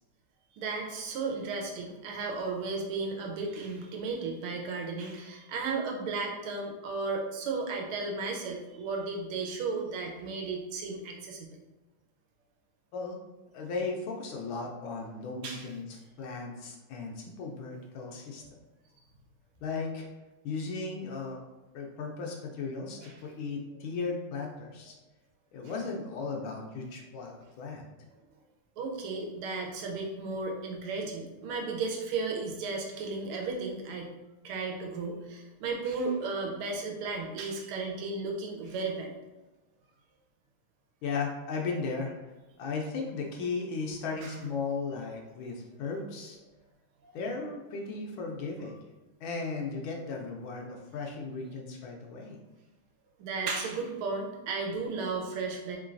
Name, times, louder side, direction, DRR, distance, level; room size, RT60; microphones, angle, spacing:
voice 1, 0.6-11.5 15.4-15.7 23.0-23.1 28.8-34.1 34.4-39.1 44.2-44.3 53.2-55.8, right 4 dB, 85° right, 1 dB, 1.5 m, -34 dB
voice 2, 13.5-18.4 19.6-20.1 20.4-21.4 21.7-24.9 25.5-27.9 41.0-42.1 42.6-46.4 47.1-48.8 49.2-52.4, left 4 dB, 75° left, 1 dB, 1.3 m, -36 dB
3.7 x 3.2 x 2.5 m, 1.1 s
omnidirectional pair, 2.4 m